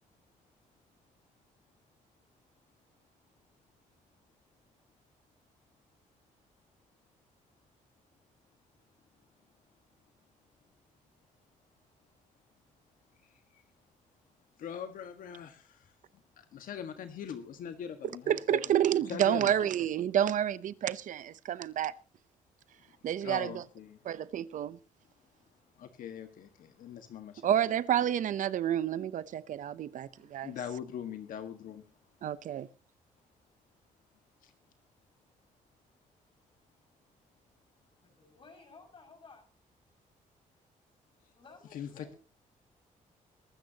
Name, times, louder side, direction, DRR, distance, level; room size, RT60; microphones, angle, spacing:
voice 1, 14.6-15.9 16.4-18.8 19.0-19.5 23.2-24.0 25.8-27.5 30.4-31.8 34.4-34.5 41.7-42.1, left 8 dB, 75° left, 1.7 m, -42 dB
voice 2, 18.3-21.9 23.0-23.6 24.0-24.8 27.4-30.5 32.2-32.7, right 10 dB, 70° right, 0.8 m, -29 dB
voice 3, 38.0-39.4 41.3-42.2, left 4 dB, 40° left, 6.4 m, -55 dB
22.5 x 13.0 x 2.9 m
cardioid pair, 120°, 14 cm